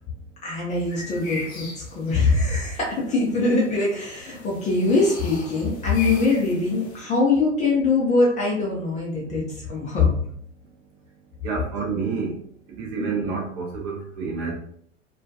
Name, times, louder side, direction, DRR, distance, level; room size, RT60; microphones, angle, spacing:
voice 1, 0.4-10.2 13.0-13.1, left 3 dB, 20° left, -4 dB, 0.5 m, -22 dB
sound 1, 0.7-7.0, left 3 dB, 45° left, 0.8 m, -40 dB
voice 2, 11.4-12.4 12.7-14.5, right 5 dB, 35° right, -1 dB, 0.7 m, -29 dB
2.2 x 2.2 x 2.7 m, 0.65 s
figure-of-eight pair, 95°, 38 cm